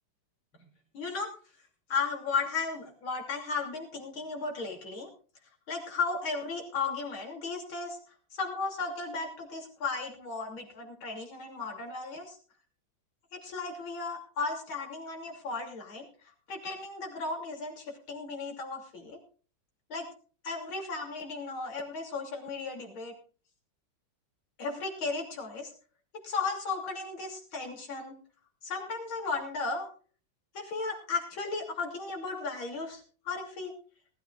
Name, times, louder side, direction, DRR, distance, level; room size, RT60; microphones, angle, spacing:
voice 1, 0.9-1.3 1.9-5.1 5.7-8.0 8.3-12.4 13.3-16.1 16.5-19.2 19.9-20.1 20.4-23.1 24.6-25.7 26.2-28.2 28.6-29.9 30.5-33.7, left 4 dB, 80° left, 2 dB, 3.7 m, -35 dB
19.5 x 13.5 x 2.5 m, 0.40 s
omnidirectional pair, 2.2 m